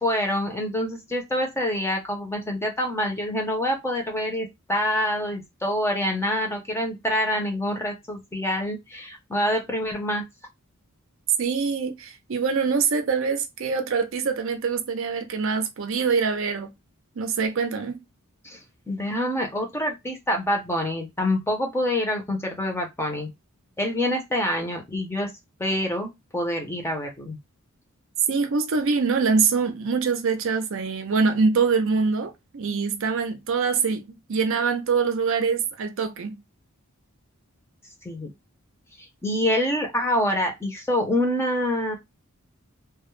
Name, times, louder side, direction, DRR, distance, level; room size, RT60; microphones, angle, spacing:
voice 1, 0.0-10.2 18.4-18.6 18.9-23.3 23.8-25.3 25.6-27.4 38.0-38.3 39.2-42.0, left 1 dB, 10° left, 0.5 m, -26 dB
voice 2, 11.4-16.7 17.2-18.0 28.3-36.4, right 5 dB, 60° right, 0.5 m, -24 dB
2.2 x 2.0 x 3.0 m
head